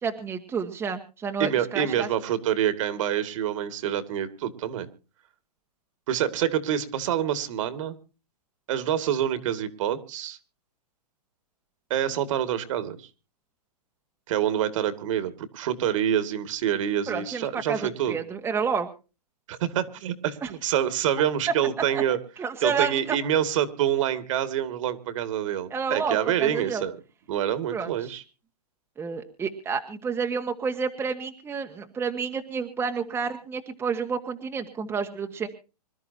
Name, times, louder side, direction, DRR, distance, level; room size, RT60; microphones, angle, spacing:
voice 1, 0.0-2.1 17.1-18.9 20.4-20.5 22.4-23.2 25.7-26.8 27.7-28.2 29.0-35.5, right 5 dB, 10° right, 4 dB, 1.6 m, -30 dB
voice 2, 1.4-4.9 6.1-8.0 8.7-10.4 11.9-13.1 14.3-18.2 19.5-22.2 22.6-27.0 27.3-28.2, right 10 dB, 50° right, 12 dB, 2.3 m, -26 dB
26.0 x 12.5 x 2.8 m, 0.34 s
hypercardioid pair, 145°, 21 cm